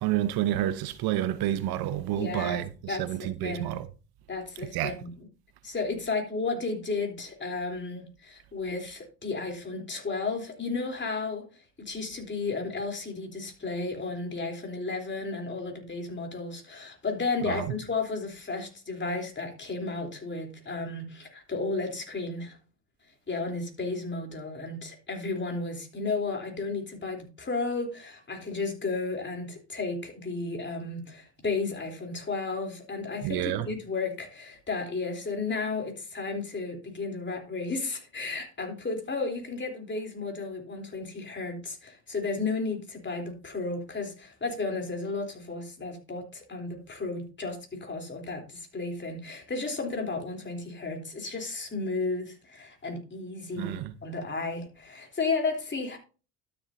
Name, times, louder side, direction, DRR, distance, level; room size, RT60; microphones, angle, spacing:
voice 1, 0.0-2.7 3.0-3.9 4.7-4.9 33.2-33.7 53.6-53.9, right 13 dB, 65° right, 0.9 m, -29 dB
voice 2, 2.1-3.8 4.3-5.3 5.6-11.4 11.8-22.6 23.3-56.0, left 3 dB, 25° left, 3.5 m, -33 dB
12.5 x 6.9 x 2.7 m
hypercardioid pair, 70°, 41 cm